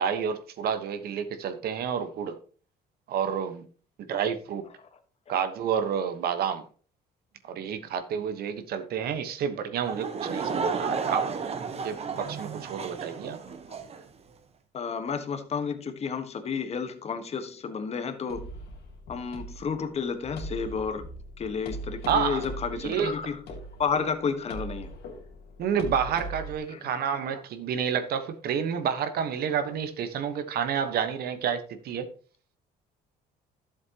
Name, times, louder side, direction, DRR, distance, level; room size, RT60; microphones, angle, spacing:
voice 1, 0.0-2.4 3.1-3.6 4.0-4.6 5.3-6.7 7.5-11.3 11.8-13.4 22.1-22.4 22.8-23.1 25.6-32.1, right 7 dB, 65° right, 1.3 m, -29 dB
Laughter / Crowd, 9.8-14.0, right 5 dB, 35° right, 1.1 m, -32 dB
voice 2, 14.7-18.5 19.1-21.0 21.4-23.4 23.8-24.9 26.7-27.2, left 6 dB, 40° left, 1.4 m, -31 dB
sound 1, 18.3-26.6, right 1 dB, 70° left, 2.5 m, -40 dB
12.0 x 7.4 x 2.9 m
cardioid pair, 110°, 17 cm